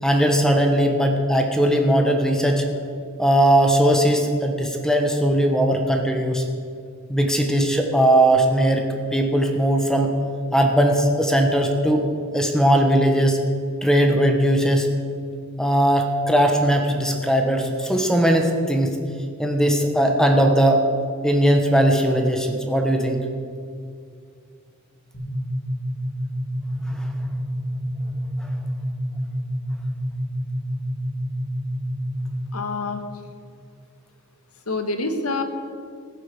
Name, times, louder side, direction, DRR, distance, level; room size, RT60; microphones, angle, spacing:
voice 1, 0.0-2.6 3.2-6.4 7.1-8.8 9.1-10.1 10.5-12.1 12.3-13.4 13.8-14.9 15.6-19.0 19.4-20.8 21.2-23.2 27.0-27.1 28.4-28.5, right 1 dB, 5° left, 3 dB, 1.2 m, -19 dB
sound 1, 25.1-32.7, equal, 50° left, 4.0 m, -28 dB
voice 2, 32.5-33.0 34.7-35.4, left 3 dB, 90° left, 7 dB, 1.5 m, -26 dB
15.0 x 8.4 x 6.9 m, 2.3 s
head